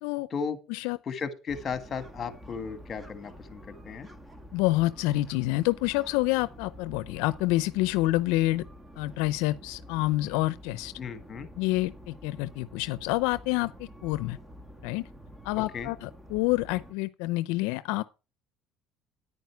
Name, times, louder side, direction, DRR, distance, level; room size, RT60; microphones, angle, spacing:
voice 1, 1.0-4.1 11.0-11.5 15.6-15.9, left 6 dB, 35° left, 1.8 m, -35 dB
sound 1, 1.5-16.9, equal, 15° right, 1.4 m, -48 dB
voice 2, 4.5-8.7 9.0-10.9 11.6-14.4 14.8-15.1 15.4-18.0, left 18 dB, 85° left, 0.5 m, -28 dB
9.9 x 9.4 x 4.6 m
cardioid pair, 120°, 0 cm